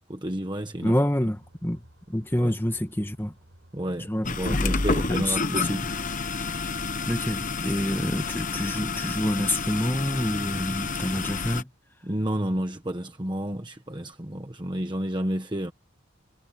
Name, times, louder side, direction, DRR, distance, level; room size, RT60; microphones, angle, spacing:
voice 1, 0.0-1.0 2.4-2.5 3.7-4.1 4.4-5.8 12.0-15.7, right 1 dB, 20° right, 1.2 m, -30 dB
voice 2, 0.8-3.3 4.1-5.8 6.3-6.7 7.1-11.7, left 1 dB, 10° left, 1.4 m, -28 dB
sound 1, 1.2-6.2, equal, 65° right, 4.2 m, -55 dB
sound 2, 4.2-11.6, left 4 dB, 40° left, 1.0 m, -29 dB
head